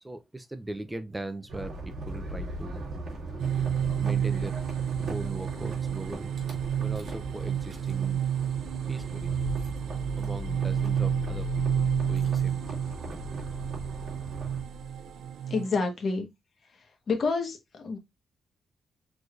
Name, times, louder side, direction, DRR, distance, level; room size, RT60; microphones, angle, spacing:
voice 1, 0.0-2.9 3.9-4.6 5.1-6.4 6.8-8.2 8.9-9.4 10.2-12.6, right 2 dB, 10° right, 0.6 m, -39 dB
sound 1, 1.5-14.6, right 1 dB, 45° right, 2.6 m, -40 dB
sound 2, 3.4-15.8, right 9 dB, 85° right, 0.6 m, -30 dB
Rattle / Car / Engine starting, 6.4-6.5 7.0-7.3 7.6-15.3, left 5 dB, 65° right, 2.0 m, -40 dB
voice 2, 15.5-16.3 17.1-18.0, left 4 dB, 45° left, 1.3 m, -28 dB
4.8 x 3.9 x 2.5 m
wide cardioid pair, 160°, 0 cm